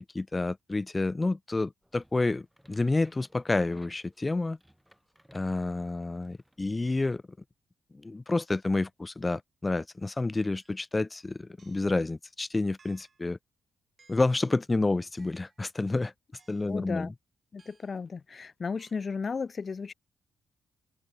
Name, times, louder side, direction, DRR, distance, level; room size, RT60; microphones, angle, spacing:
voice 1, 0.1-4.6 5.3-7.2 7.9-13.4 14.1-16.1 16.5-17.1, left 2 dB, 25° left, 0.7 m, -29 dB
sound 1, 1.8-6.6, equal, ahead, 7.0 m, -61 dB
sound 2, 10.6-10.8 11.6-12.0 12.8-13.3 14.0-14.5 15.2-15.7 16.4-16.8 17.6-18.0 18.8-18.9, right 5 dB, 45° right, 4.8 m, -63 dB
voice 2, 16.7-17.1 17.5-19.9, left 5 dB, 45° left, 1.2 m, -34 dB
supercardioid pair, 60°, 0 cm